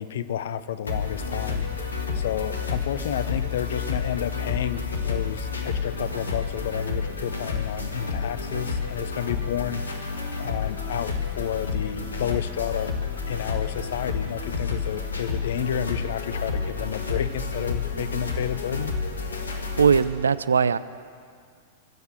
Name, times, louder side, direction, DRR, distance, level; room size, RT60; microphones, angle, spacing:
voice 1, 0.0-9.8 10.4-12.9 13.3-18.9, left 10 dB, 60° left, 14 dB, 0.7 m, -31 dB
sound 1, 0.9-20.0, left 5 dB, 80° left, 1.7 m, -30 dB
voice 2, 19.8-20.8, right 6 dB, 75° right, 17 dB, 0.4 m, -20 dB
20.5 x 8.1 x 7.8 m, 2.1 s
figure-of-eight pair, 100°, 0 cm